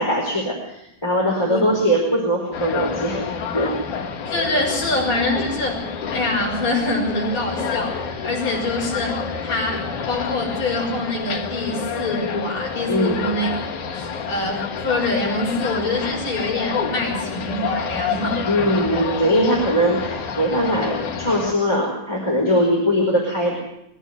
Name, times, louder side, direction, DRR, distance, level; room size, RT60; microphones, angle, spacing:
voice 1, 0.0-3.3 3.5-3.8 12.9-13.2 18.5-23.5, equal, 10° left, -3 dB, 4.3 m, -21 dB
sound 1, 2.5-21.5, left 6 dB, 65° left, 2.9 m, -29 dB
voice 2, 4.2-5.8 6.1-13.5 13.9-18.4, left 2 dB, 35° left, -5 dB, 6.2 m, -25 dB
23.5 x 15.0 x 8.1 m, 0.85 s
omnidirectional pair, 3.9 m